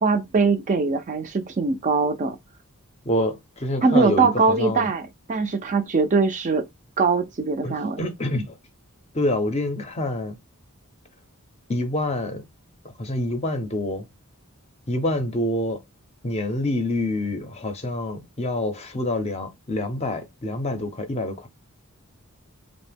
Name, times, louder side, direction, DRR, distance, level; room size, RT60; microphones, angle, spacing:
voice 1, 0.0-2.4 3.8-6.7 7.0-8.0, right 4 dB, 35° right, 0.4 m, -22 dB
voice 2, 3.1-4.9 7.6-8.6 9.1-10.4 11.7-12.4 13.0-14.0 14.9-15.8 16.2-21.5, left 1 dB, 30° left, 0.5 m, -27 dB
2.8 x 2.1 x 3.3 m
head